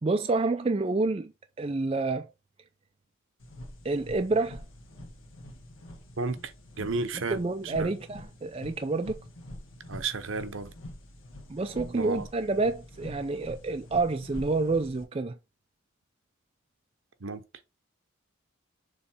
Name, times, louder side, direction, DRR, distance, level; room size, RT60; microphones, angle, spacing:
voice 1, 0.0-1.3 1.6-2.3 3.8-4.6 7.3-9.2 11.5-15.3, right 3 dB, 25° right, 0.4 m, -28 dB
sound 1, 3.4-15.0, left 1 dB, 75° left, 1.9 m, -45 dB
voice 2, 6.2-7.9 9.9-10.7 11.9-12.3 17.2-17.4, right 4 dB, 70° right, 0.8 m, -33 dB
6.9 x 3.2 x 4.3 m
head